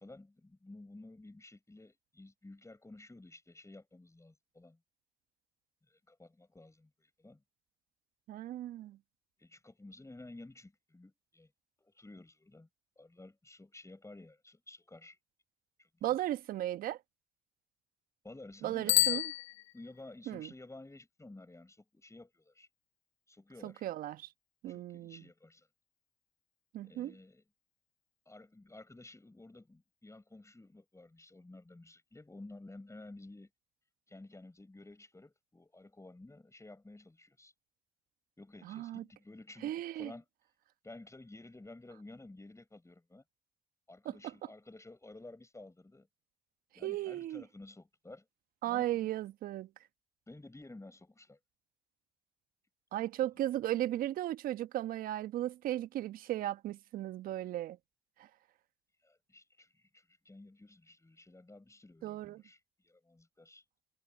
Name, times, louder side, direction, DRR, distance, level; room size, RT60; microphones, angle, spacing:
voice 1, 0.0-4.8 5.9-7.4 9.4-11.5 11.8-12.7 13.0-15.2 15.8-16.2 18.2-19.3 19.7-22.7 23.3-23.8 24.6-25.7 26.8-27.4 28.3-33.5 34.1-37.5 38.4-40.2 40.8-43.2 43.9-46.1 46.8-48.3 48.7-49.1 50.3-51.4 59.0-62.6 62.8-63.6, left 2 dB, 20° left, 6.7 m, -53 dB
voice 2, 8.3-9.0 16.0-17.0 18.6-19.2 20.3-20.5 23.6-24.3 24.6-25.2 26.7-27.1 38.6-39.0 39.6-40.1 44.0-44.3 46.8-47.4 48.6-49.7 52.9-57.8 58.2-58.3 62.0-62.4, right 13 dB, 70° right, 1.2 m, -36 dB
Bicycle bell, 18.8-20.2, left 17 dB, 90° left, 0.4 m, -30 dB
hypercardioid pair, 40°, 15 cm